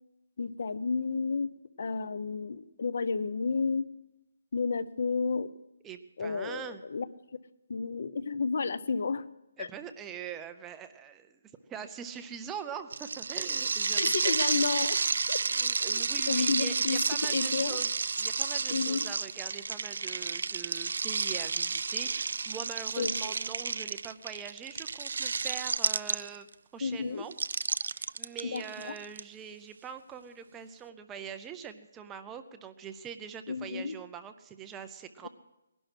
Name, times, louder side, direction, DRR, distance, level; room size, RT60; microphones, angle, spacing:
voice 1, 0.4-1.5 1.8-3.9 4.5-5.5 6.2-7.1 7.7-9.2 9.6-9.7 14.0-15.0 15.3-15.4 15.9-17.8 18.7-19.1 23.0-23.3 26.8-27.3 28.4-28.9 33.5-34.0 35.2-35.3, left 4 dB, 55° left, 16 dB, 0.8 m, -31 dB
voice 2, 5.8-6.8 9.6-11.3 11.7-14.4 15.5-17.9 18.2-26.5 26.7-27.3 27.8-35.3, right 7 dB, 10° right, 8 dB, 0.5 m, -43 dB
sound 1, 12.9-26.5 27.3-29.2, right 5 dB, 65° right, 0.5 m, -31 dB
19.5 x 11.5 x 6.1 m, 0.95 s
hypercardioid pair, 175°, 0 cm